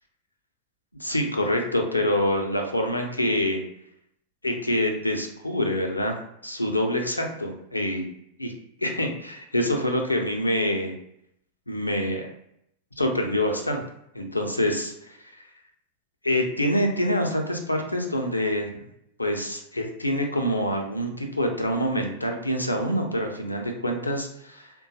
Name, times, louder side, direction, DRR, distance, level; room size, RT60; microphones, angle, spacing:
voice 1, 1.0-3.6 4.4-8.1 8.4-8.5 8.8-11.0 11.7-12.3 13.0-13.8 14.1-15.5 16.2-18.9 19.2-24.7, left 1 dB, 85° left, 2 dB, 0.6 m, -26 dB
3.6 x 2.2 x 2.7 m, 0.75 s
figure-of-eight pair, 90°, 0 cm